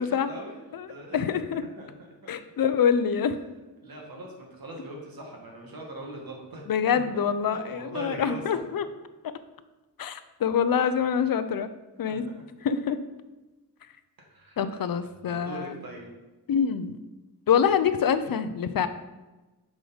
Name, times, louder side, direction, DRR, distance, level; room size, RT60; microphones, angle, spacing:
voice 1, 0.2-0.5 0.9-1.4 1.8-1.9 2.2-2.3 3.8-7.0 7.5-8.6 12.1-12.2 14.3-14.6 15.3-16.1, right 1 dB, 65° right, 0 dB, 1.7 m, -40 dB
voice 2, 1.1-1.6 2.3-3.4 6.7-8.9 9.2-9.3 10.0-11.7 12.0-13.0 14.6-15.7 16.5-17.0 17.5-18.9, left 7 dB, 65° left, 12 dB, 0.5 m, -25 dB
6.2 x 5.0 x 3.9 m, 1.1 s
wide cardioid pair, 100°, 38 cm